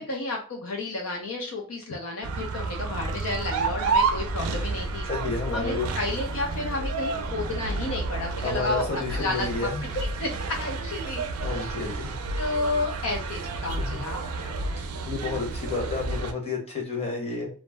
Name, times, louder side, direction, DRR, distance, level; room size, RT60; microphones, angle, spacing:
voice 1, 0.0-5.1 5.5-9.7 9.9-11.9 12.4-14.6, left 2 dB, 70° left, 1 dB, 0.5 m, -32 dB
sound 1, 2.2-16.3, right 3 dB, 85° right, 0.4 m, -31 dB
sound 2, 3.2-12.4, left 1 dB, 15° right, 0.4 m, -41 dB
voice 2, 5.0-5.9 8.4-9.8 11.4-12.2 13.8-14.0 15.0-17.5, left 3 dB, 30° left, -1 dB, 0.9 m, -30 dB
2.5 x 2.0 x 3.3 m, 0.40 s
head